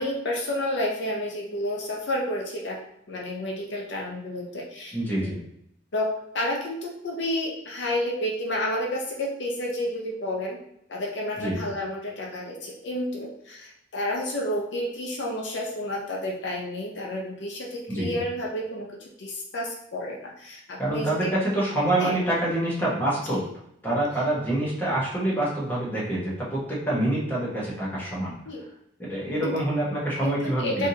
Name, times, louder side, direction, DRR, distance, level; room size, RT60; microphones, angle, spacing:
voice 1, 0.0-2.8 3.1-5.3 5.9-10.6 10.9-18.9 19.2-21.2 22.0-22.2 23.3-23.4 28.5-28.6 29.4-29.6 30.2-30.9, left 1 dB, 75° left, -2 dB, 0.6 m, -30 dB
voice 2, 4.9-5.4 11.4-11.6 17.9-18.1 20.8-23.4 23.8-28.3 29.0-30.9, right 1 dB, 10° left, -7 dB, 1.0 m, -26 dB
3.4 x 2.7 x 2.7 m, 0.77 s
head